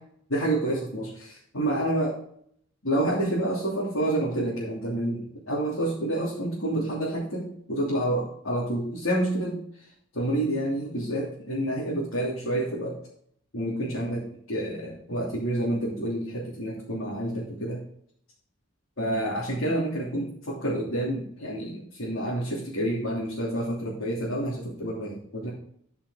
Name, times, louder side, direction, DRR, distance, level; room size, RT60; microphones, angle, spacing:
voice 1, 0.3-2.2 2.8-9.6 10.1-13.0 13.5-17.8 19.0-25.5, right 1 dB, 80° left, -7 dB, 3.1 m, -28 dB
13.0 x 5.8 x 3.9 m, 0.64 s
head